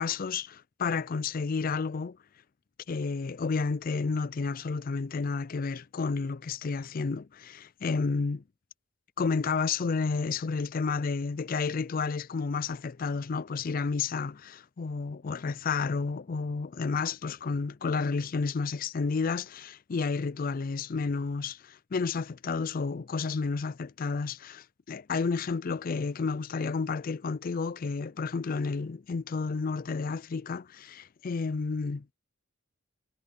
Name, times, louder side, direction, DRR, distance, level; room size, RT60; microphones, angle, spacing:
voice 1, 0.0-2.2 2.9-8.4 9.2-32.0, left 4 dB, 40° left, 0.4 m, -31 dB
head